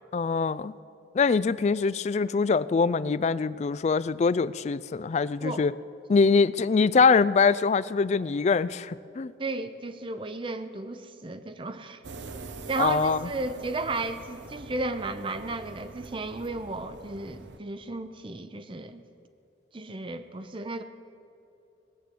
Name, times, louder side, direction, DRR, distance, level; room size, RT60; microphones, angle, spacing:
voice 1, 0.1-0.7 1.1-5.7 6.1-9.3 12.8-13.2, left 5 dB, 35° left, 18 dB, 0.3 m, -23 dB
voice 2, 9.4-12.0 12.7-19.0 19.7-20.8, right 2 dB, 30° right, 10 dB, 0.6 m, -34 dB
sound 1, 12.0-17.6, right 3 dB, 75° right, 0.7 m, -44 dB
18.0 x 7.7 x 8.5 m, 2.7 s
head